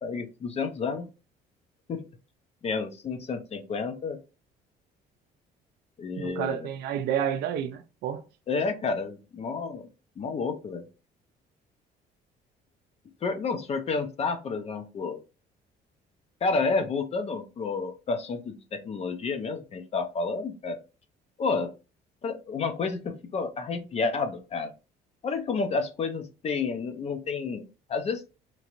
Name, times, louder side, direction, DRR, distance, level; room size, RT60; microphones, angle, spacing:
voice 1, 0.0-1.0 1.9-2.0 2.6-4.2 6.0-6.7 8.5-9.9 10.2-10.9 13.2-15.2 16.4-20.8 21.4-21.7 22.2-24.7 25.2-28.2, left 4 dB, 40° left, 0.5 m, -30 dB
voice 2, 6.2-8.2, right 9 dB, 75° right, 0.4 m, -30 dB
2.9 x 2.4 x 2.9 m
cardioid pair, 110°, 17 cm